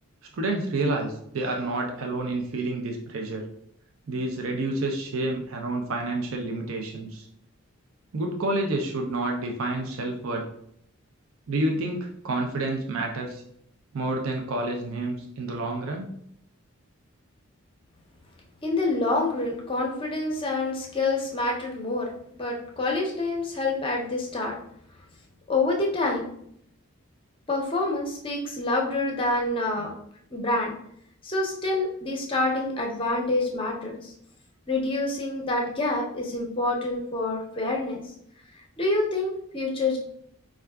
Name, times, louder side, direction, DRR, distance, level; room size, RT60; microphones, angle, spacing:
voice 1, 0.3-3.4 4.1-7.3 8.1-10.5 11.5-13.4 13.9-16.1, right 2 dB, 70° right, 1 dB, 0.5 m, -29 dB
voice 2, 18.6-24.6 25.5-26.3 27.5-29.9 30.3-30.7 31.2-34.1 34.7-38.0 38.5-40.0, left 2 dB, 25° left, 0 dB, 0.5 m, -27 dB
4.5 x 2.4 x 2.2 m, 0.71 s
head